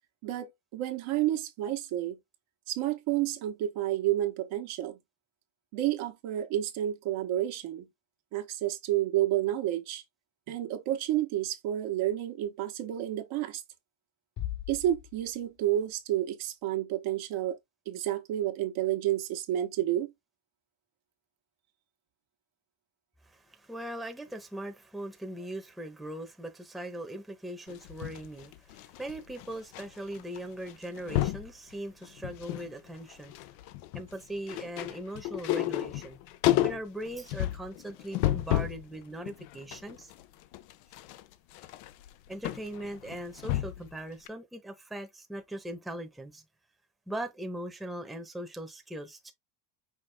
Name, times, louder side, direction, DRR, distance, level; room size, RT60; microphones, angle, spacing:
voice 1, 0.2-2.2 2.7-5.0 5.7-7.9 8.3-10.0 10.5-13.6 14.7-17.6 17.9-20.1, right 13 dB, 65° right, 1.2 m, -30 dB
sound 1, 14.4-15.8, left 13 dB, 45° left, 0.9 m, -39 dB
voice 2, 23.2-33.3 33.9-36.2 36.6-40.1 42.3-46.4 47.1-49.3, right 1 dB, ahead, 0.9 m, -40 dB
sound 2, 27.7-29.8 30.1-30.4 30.7-31.5 32.0-32.7 33.0-38.8 39.3-43.9 44.3-44.4, left 15 dB, 85° left, 0.7 m, -32 dB
5.6 x 2.4 x 3.4 m
supercardioid pair, 105°, 50 cm